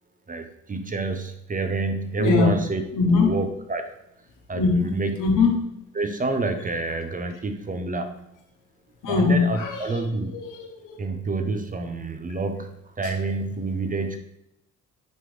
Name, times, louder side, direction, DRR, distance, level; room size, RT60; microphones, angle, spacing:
voice 1, 0.3-2.8 3.1-3.9 4.5-5.1 6.0-8.2 9.1-10.4 11.0-12.7 13.0-14.2, right 3 dB, 25° right, 7 dB, 0.7 m, -28 dB
voice 2, 2.2-2.5 2.9-3.4 4.5-5.6 9.0-11.0 13.0-13.1, left 4 dB, 75° left, 1 dB, 1.5 m, -22 dB
9.4 x 3.4 x 3.3 m, 0.83 s
cardioid pair, 100°, 32 cm